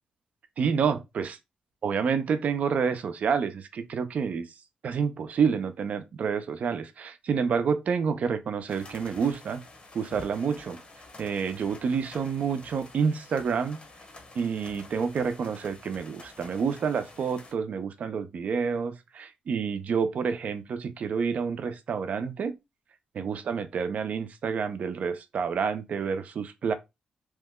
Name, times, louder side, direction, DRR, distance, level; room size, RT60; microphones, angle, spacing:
voice 1, 0.6-1.4 1.8-4.5 4.8-9.6 9.9-10.8 11.2-13.8 14.3-22.5 23.1-26.7, right 6 dB, 65° right, 0.6 m, -28 dB
sound 1, 8.7-17.5, left 2 dB, 40° left, 0.9 m, -49 dB
3.1 x 2.2 x 3.6 m
cardioid pair, 65°, 3 cm